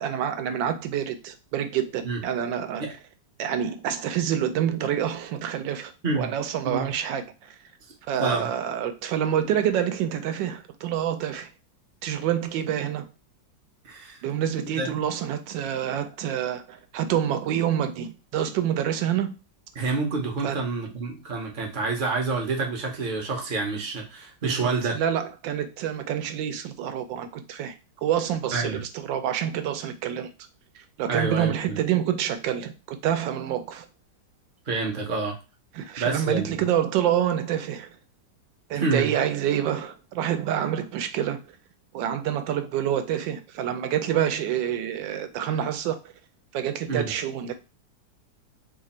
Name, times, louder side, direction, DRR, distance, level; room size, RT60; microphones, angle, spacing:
voice 1, 0.0-2.8 3.4-7.6 8.1-11.5 12.0-13.1 14.2-19.3 20.4-20.6 24.4-27.7 28.0-30.3 31.0-33.9 35.7-38.0 38.7-41.4 41.9-46.0 46.5-47.5, right 10 dB, 80° right, 1.3 m, -27 dB
voice 2, 13.8-14.2 14.8-15.0 19.8-25.0 28.5-28.8 31.1-31.8 34.7-35.4 36.0-36.5 38.7-39.1 46.9-47.1, right 3 dB, 45° right, 0.7 m, -28 dB
3.3 x 2.4 x 4.1 m
omnidirectional pair, 2.0 m